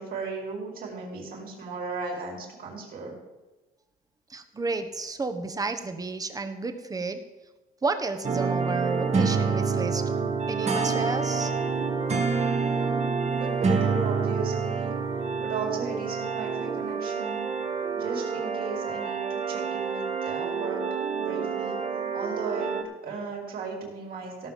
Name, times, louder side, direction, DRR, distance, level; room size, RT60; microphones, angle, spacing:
voice 1, 0.0-3.2 13.3-14.9 15.4-17.5 18.0-20.8 21.2-24.5, right 4 dB, 60° right, -1 dB, 4.6 m, -36 dB
voice 2, 4.3-7.2 7.8-10.0 10.5-11.5, right 3 dB, 20° right, 8 dB, 1.3 m, -31 dB
sound 1, 8.2-22.8, right 5 dB, 40° right, 2.0 m, -28 dB
17.0 x 5.7 x 7.4 m, 1.1 s
cardioid pair, 110°, 17 cm